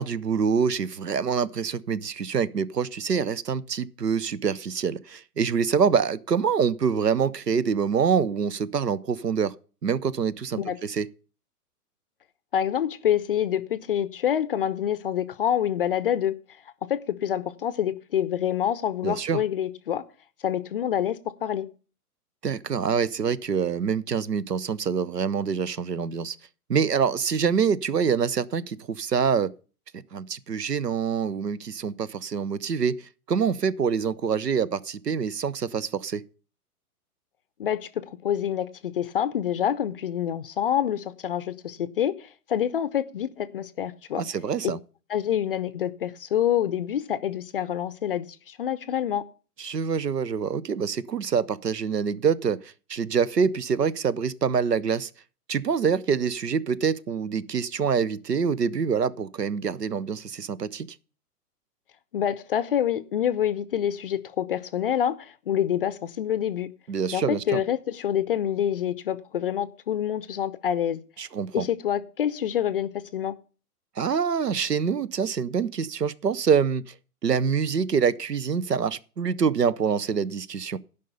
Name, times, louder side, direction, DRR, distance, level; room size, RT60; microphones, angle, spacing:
voice 1, 0.0-9.5 9.8-11.1 19.0-19.4 22.4-26.4 26.7-29.5 30.1-36.2 44.2-44.8 49.6-55.1 55.5-60.9 66.9-67.6 71.2-71.7 74.0-76.8 77.2-80.8, right 6 dB, 90° right, 0.7 m, -25 dB
voice 2, 12.5-16.3 16.9-20.0 20.4-21.7 37.6-44.2 45.1-49.2 62.1-66.7 67.1-71.0 71.5-73.3, left 10 dB, 40° left, 0.5 m, -27 dB
12.0 x 5.4 x 6.7 m
figure-of-eight pair, 115°, 47 cm